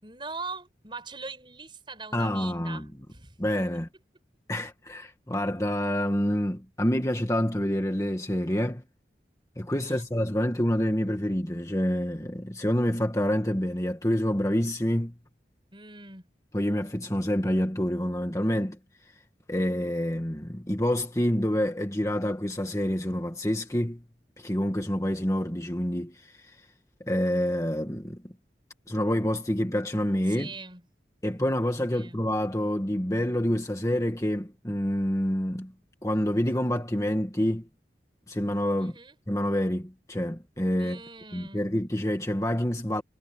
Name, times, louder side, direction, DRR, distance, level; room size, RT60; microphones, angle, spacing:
voice 1, 0.0-3.4 9.8-10.1 15.7-16.3 30.3-30.9 31.9-32.2 38.8-39.2 40.8-41.7, right 4 dB, 25° right, 5.7 m, -42 dB
voice 2, 2.1-2.9 3.4-3.9 4.5-8.8 9.6-15.1 16.5-18.8 19.5-24.0 24.4-26.3 27.1-28.2 28.9-30.5 31.2-35.7 36.0-37.7 38.3-38.9 39.3-41.0 41.3-43.0, equal, 15° left, 1.8 m, -27 dB
head